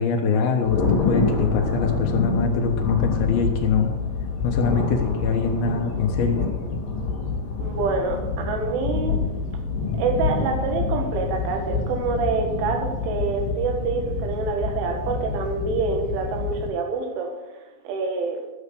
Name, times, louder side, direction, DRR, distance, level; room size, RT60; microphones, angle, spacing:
voice 1, 0.0-3.9 4.4-6.5, left 5 dB, 75° left, 2 dB, 2.2 m, -23 dB
Thunder, 0.6-16.7, left 4 dB, 50° left, 3.6 m, -27 dB
voice 2, 7.6-9.2 10.0-17.3 17.9-18.4, right 4 dB, 75° right, 3 dB, 4.0 m, -26 dB
13.0 x 6.3 x 6.8 m, 1.1 s
omnidirectional pair, 5.9 m